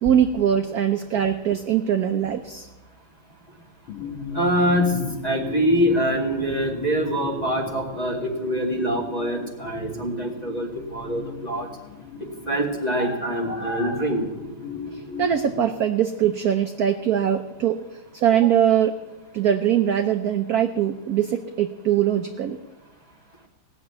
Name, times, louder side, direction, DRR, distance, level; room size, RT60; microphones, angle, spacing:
voice 1, 0.0-2.7 14.9-17.8 18.1-19.0 19.3-22.6, right 9 dB, 65° right, 7 dB, 0.9 m, -22 dB
sound 1, 3.9-15.6, left 4 dB, 75° left, 2.2 m, -36 dB
voice 2, 4.3-5.0 5.2-11.7 12.5-14.3, equal, 20° left, 0 dB, 2.2 m, -24 dB
17.5 x 7.1 x 9.4 m, 1.1 s
omnidirectional pair, 2.3 m